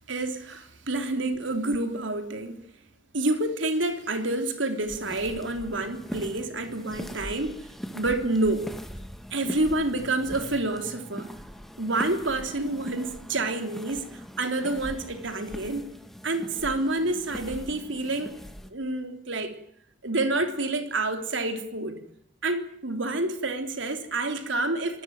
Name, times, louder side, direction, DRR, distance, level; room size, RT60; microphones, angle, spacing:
voice 1, 0.1-2.6 3.1-7.7 7.9-8.7 9.3-11.3 11.8-15.9 16.2-18.4 18.7-19.5 20.0-22.0 22.4-25.0, right 2 dB, 90° right, 3.4 m, -28 dB
sound 1, 4.8-18.7, equal, ahead, 2.4 m, -41 dB
26.5 x 19.5 x 9.2 m
head